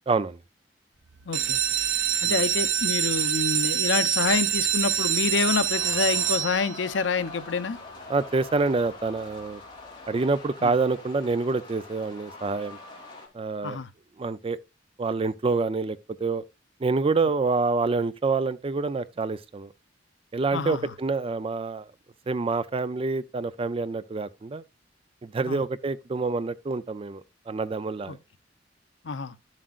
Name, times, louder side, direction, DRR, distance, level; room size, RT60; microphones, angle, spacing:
voice 1, 0.1-0.4 2.2-2.4 8.1-9.6 10.1-12.8 13.3-13.8 14.2-14.6 15.0-16.4 16.8-19.7 20.3-21.9 22.3-24.6 25.2-28.2, right 3 dB, 30° right, 0.4 m, -27 dB
sound 1, 1.2-6.9 7.6-8.0 8.4-8.5 8.8-8.9 9.3-9.4, right 9 dB, 80° right, 1.2 m, -25 dB
voice 2, 1.3-1.6 2.2-7.8 10.6-10.7 13.6-13.9 20.5-20.9 25.5-25.6 28.1-28.2 29.0-29.3, left 4 dB, 80° left, 0.7 m, -27 dB
sound 2, 5.7-13.3, left 3 dB, 25° left, 2.5 m, -44 dB
10.5 x 7.4 x 2.4 m
head